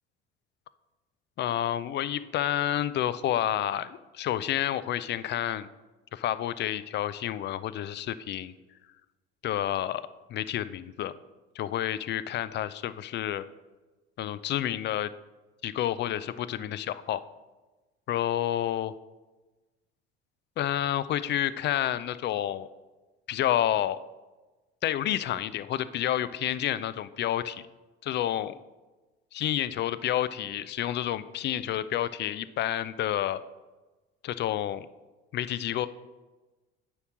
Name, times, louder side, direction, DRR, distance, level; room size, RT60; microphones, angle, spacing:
voice 1, 1.4-5.7 6.1-8.5 9.4-10.0 10.3-11.1 11.6-13.4 14.2-15.1 15.6-17.2 18.1-18.9 20.6-22.7 23.3-24.0 24.8-27.6 28.0-28.5 29.3-33.4 34.2-34.9 35.3-35.9, left 12 dB, 35° left, 15 dB, 0.4 m, -29 dB
9.5 x 3.2 x 6.2 m, 1.2 s
figure-of-eight pair, 65°, 34 cm